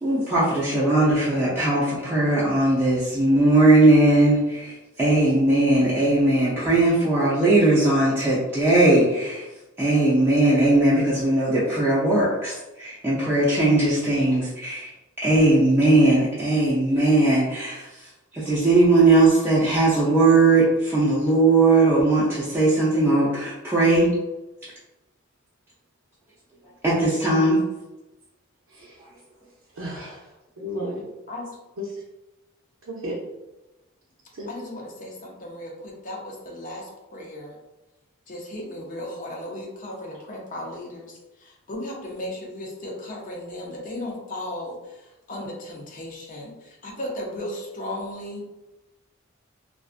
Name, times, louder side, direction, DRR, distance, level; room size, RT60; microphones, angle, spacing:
voice 1, 0.0-9.5 9.8-14.9 15.2-17.9 18.3-24.1 26.8-27.6, right 2 dB, 10° right, -9 dB, 0.5 m, -19 dB
voice 2, 29.8-30.2 30.6-31.0 31.8-31.9 32.8-33.2 34.4-34.5, equal, 70° right, -5 dB, 0.5 m, -33 dB
voice 3, 34.5-37.6 38.3-48.5, left 1 dB, 40° left, -1 dB, 0.6 m, -36 dB
2.4 x 2.4 x 2.4 m, 1.0 s
head